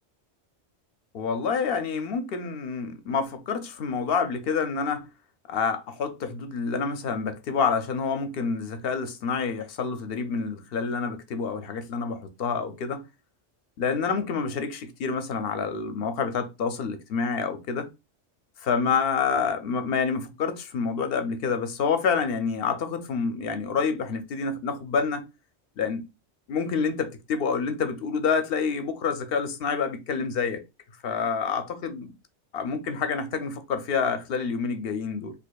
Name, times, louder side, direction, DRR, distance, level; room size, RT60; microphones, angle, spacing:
voice 1, 1.1-5.1 5.5-13.0 13.8-17.9 18.6-25.3 25.8-26.0 26.5-30.6 31.0-32.1 32.5-35.3, left 5 dB, 65° left, 0.7 m, -28 dB
4.4 x 2.7 x 2.3 m
omnidirectional pair, 1.2 m